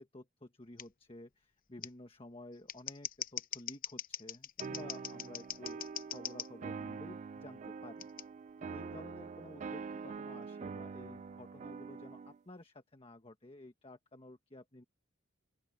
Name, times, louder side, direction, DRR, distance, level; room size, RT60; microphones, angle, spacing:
voice 1, 0.0-8.1 8.6-14.8, left 1 dB, 25° left, 1.3 m, -53 dB
Scissors, 0.8-0.9 1.8-1.9 2.5-6.5 8.0-8.2, left 10 dB, 45° left, 0.8 m, -42 dB
sound 1, 4.6-12.4, right 5 dB, 35° right, 0.3 m, -45 dB
open air
head